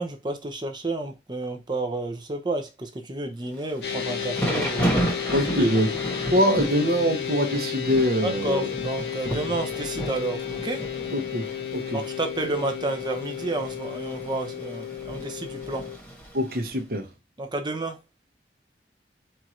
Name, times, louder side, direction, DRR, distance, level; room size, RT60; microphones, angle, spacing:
voice 1, 0.0-4.9 5.4-5.7 8.2-10.8 11.9-15.9 17.4-18.0, right 2 dB, 25° right, 0.6 m, -30 dB
Thunder / Rain, 3.6-16.7, right 1 dB, 10° left, 1.2 m, -33 dB
sound 1, 3.8-16.0, left 9 dB, 70° left, 0.8 m, -33 dB
voice 2, 5.3-6.0 6.3-8.7 9.2-9.3 11.1-12.0 16.3-17.1, equal, 55° right, 1.0 m, -24 dB
4.5 x 2.5 x 4.3 m
head